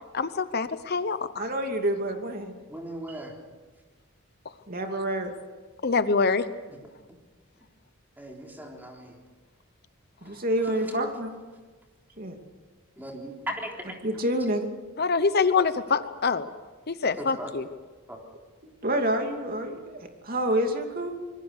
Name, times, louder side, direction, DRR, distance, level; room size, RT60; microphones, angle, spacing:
voice 1, 0.1-1.4 5.8-6.5 15.0-16.5 16.9-17.7, left 4 dB, 50° left, 12 dB, 0.8 m, -25 dB
voice 2, 1.4-2.6 3.1-3.2 4.7-5.3 10.2-11.3 12.2-12.4 14.0-14.7 18.8-21.3, right 1 dB, 45° right, 4 dB, 2.7 m, -28 dB
voice 3, 2.7-3.3 6.7-6.8 8.2-9.1 13.0-14.0 17.2-17.5 18.1-18.2, right 1 dB, 10° right, 0 dB, 3.7 m, -38 dB
25.5 x 21.5 x 6.6 m, 1.3 s
head